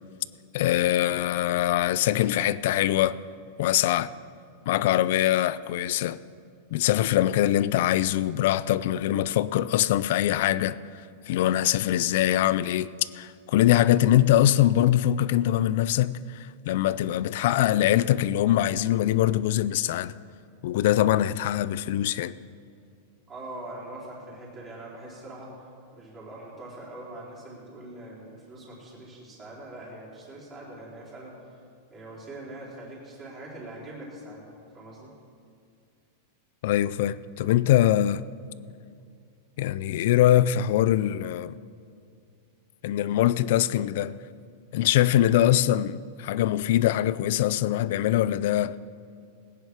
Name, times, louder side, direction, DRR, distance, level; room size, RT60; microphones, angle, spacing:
voice 1, 0.5-3.2 3.6-4.1 4.7-6.2 6.7-10.8 11.3-20.1 20.6-22.3 36.6-38.3 39.6-41.6 42.8-44.2 44.7-48.8, left 13 dB, 60° left, 0.4 m, -23 dB
voice 2, 23.3-25.5 25.9-31.4 31.9-34.4 34.7-35.1, right 1 dB, 20° right, 4.4 m, -42 dB
19.5 x 10.0 x 4.8 m
supercardioid pair, 160°, 0 cm